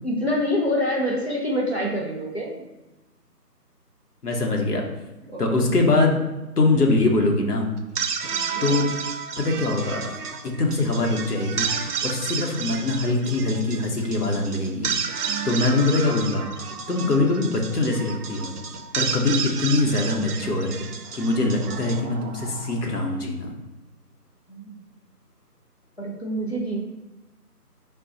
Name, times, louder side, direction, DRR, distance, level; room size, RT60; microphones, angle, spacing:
voice 1, 0.0-2.5 5.3-5.4 8.3-8.6 15.3-15.5 17.0-17.2 24.5-24.8 26.0-26.8, equal, 40° left, -2 dB, 0.6 m, -26 dB
voice 2, 4.2-4.9 5.4-6.2 6.6-7.7 8.6-8.9 9.4-10.1 10.4-11.7 12.0-16.4 16.9-18.5 18.9-20.7 21.1-23.6, left 2 dB, 70° left, 1 dB, 0.9 m, -23 dB
sound 1, 7.8-23.0, right 6 dB, 70° right, 0.5 m, -31 dB
3.6 x 2.3 x 3.9 m, 1.0 s
figure-of-eight pair, 170°, 49 cm